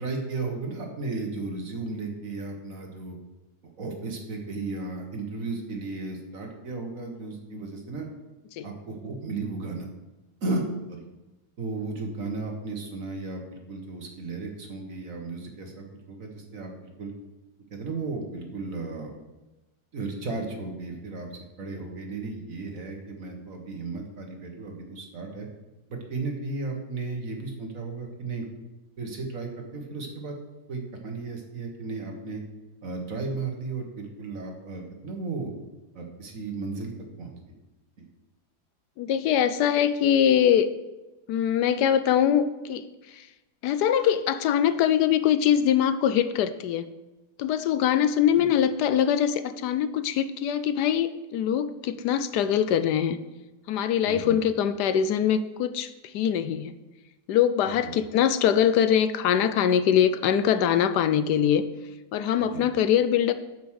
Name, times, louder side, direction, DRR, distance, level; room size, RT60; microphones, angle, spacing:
voice 1, 0.0-3.2 3.8-8.1 8.6-9.9 10.4-10.6 10.9-11.0 11.6-17.1 17.7-19.1 19.9-21.3 21.6-25.5 25.9-28.5 29.0-30.4 30.7-32.4 32.8-35.5 35.9-36.9 37.2-37.4 38.0-38.1 48.4-48.5 54.0-54.4 57.7-57.9 62.4-62.7, right 3 dB, 55° right, 2 dB, 1.9 m, -34 dB
voice 2, 39.0-40.7 41.3-42.8 43.1-43.3 43.6-46.9 47.4-53.2 53.7-56.7 57.3-61.6 62.1-63.3, left 9 dB, 80° left, 12 dB, 1.2 m, -23 dB
9.2 x 6.2 x 6.4 m, 1.1 s
omnidirectional pair, 1.8 m